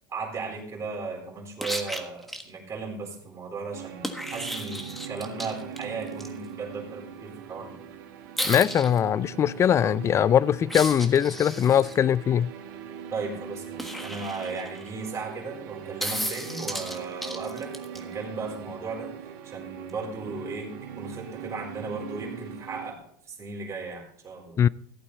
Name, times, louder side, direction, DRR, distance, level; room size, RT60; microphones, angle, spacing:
voice 1, 0.1-7.8 13.1-19.1 19.4-24.6, right 4 dB, 25° right, 4.0 m, -36 dB
sound 1, 1.6-2.4 4.0-6.3 8.4-9.0 10.7-11.9 13.8-14.9 16.0-18.0 19.9-20.0, equal, ahead, 1.4 m, -34 dB
sound 2, 3.7-22.9, right 8 dB, 70° right, 1.9 m, -41 dB
voice 2, 8.4-12.5 24.6-24.7, left 9 dB, 25° left, 0.3 m, -21 dB
14.5 x 8.5 x 4.0 m
supercardioid pair, 105°, 11 cm